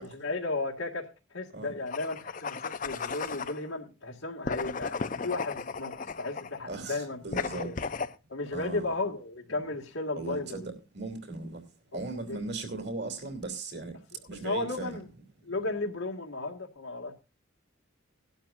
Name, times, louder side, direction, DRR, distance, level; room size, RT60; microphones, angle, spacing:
voice 1, 0.1-5.0 5.2-7.2 7.6-7.8 8.3-10.7 11.9-12.4 14.4-15.0 15.4-17.1, left 2 dB, 80° left, 2.1 m, -34 dB
sound 1, 1.9-3.6 4.4-6.6 7.3-8.1, left 5 dB, 40° left, 0.5 m, -35 dB
voice 2, 6.6-7.7 8.5-8.9 10.1-11.6 11.9-14.0 14.3-15.0, right 3 dB, 50° right, 3.1 m, -38 dB
18.5 x 12.0 x 2.6 m
head